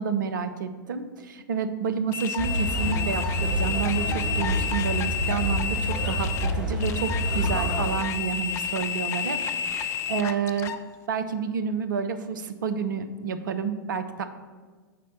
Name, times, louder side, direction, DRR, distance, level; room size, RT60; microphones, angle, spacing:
voice 1, 0.0-9.4 9.7-10.7 11.1-14.3, right 6 dB, 65° right, 9 dB, 0.5 m, -29 dB
sound 1, 2.1-10.8, left 8 dB, 25° left, 0.3 m, -31 dB
sound 2, 2.4-7.9, equal, 5° right, 1.6 m, -28 dB
5.1 x 4.2 x 5.6 m, 1.4 s
figure-of-eight pair, 95°, 11 cm